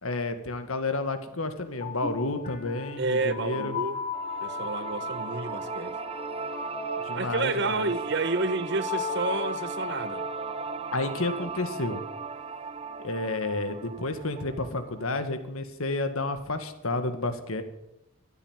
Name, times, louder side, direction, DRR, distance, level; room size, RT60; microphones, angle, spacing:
voice 1, 0.0-3.8 7.0-7.9 10.9-12.0 13.0-17.6, left 2 dB, 85° left, 1.8 m, -31 dB
sound 1, 1.6-12.7, left 5 dB, 30° left, 3.2 m, -38 dB
voice 2, 3.0-4.0 4.4-6.0 7.1-10.2, right 3 dB, 55° right, 1.0 m, -30 dB
sound 2, 4.1-15.2, right 4 dB, 25° right, 0.7 m, -37 dB
15.0 x 10.0 x 9.0 m
head